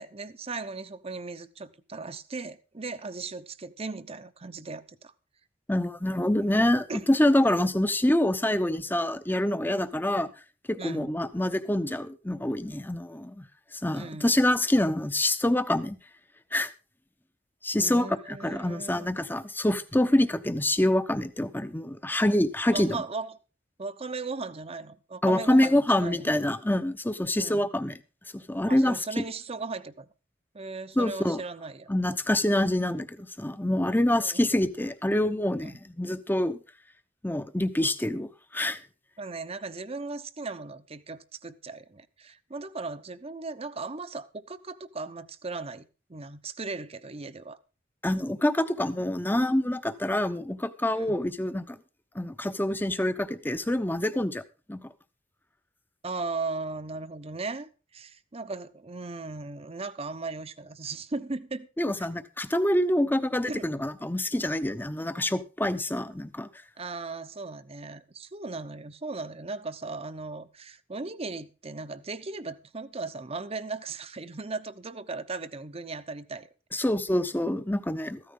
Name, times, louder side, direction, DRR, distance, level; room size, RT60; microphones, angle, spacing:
voice 1, 0.0-5.1 6.9-7.1 10.8-11.1 13.9-14.3 17.8-19.1 22.7-23.4 23.8-26.3 27.4-27.7 28.7-30.1 30.5-31.9 34.2-34.5 35.6-35.8 39.2-47.6 50.9-51.2 56.0-61.7 62.0-62.1 63.5-63.6 66.8-76.5, right 3 dB, 35° right, 0.9 m, -37 dB
voice 2, 5.7-10.3 10.7-13.4 13.7-16.0 16.5-16.7 17.6-23.0 25.2-28.0 28.3-29.0 31.0-31.4 31.9-36.6 37.2-38.8 48.0-51.8 52.1-54.4 54.7-54.8 61.8-66.5 76.7-78.2, left 1 dB, 10° left, 0.8 m, -26 dB
14.5 x 13.0 x 3.8 m
head